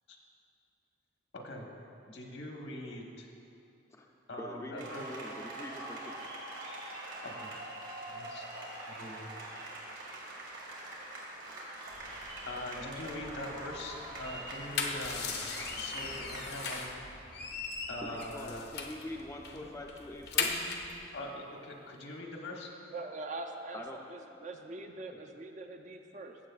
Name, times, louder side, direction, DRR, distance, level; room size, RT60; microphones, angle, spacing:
voice 1, 1.3-1.7 2.1-3.3 4.3-5.0 7.2-7.5 8.1-8.4 8.9-9.2 12.5-15.4 15.8-17.0 17.9-18.7 19.6-19.7 21.1-22.7, left 1 dB, 80° left, 0 dB, 1.2 m, -42 dB
voice 2, 4.4-6.1 18.0-20.7 23.7-24.0, left 1 dB, 15° left, 0 dB, 0.4 m, -44 dB
sound 1, 4.8-16.8, right 1 dB, 90° right, 1.9 m, -44 dB
sound 2, 11.9-21.0, right 1 dB, 70° right, 2.1 m, -54 dB
sound 3, 14.5-17.0 17.3-19.0 19.4-19.6 19.9-20.9, left 5 dB, 55° left, 0.6 m, -36 dB
voice 3, 22.9-26.4, right 2 dB, 40° right, 4 dB, 0.5 m, -43 dB
15.0 x 7.3 x 2.4 m, 2.7 s
head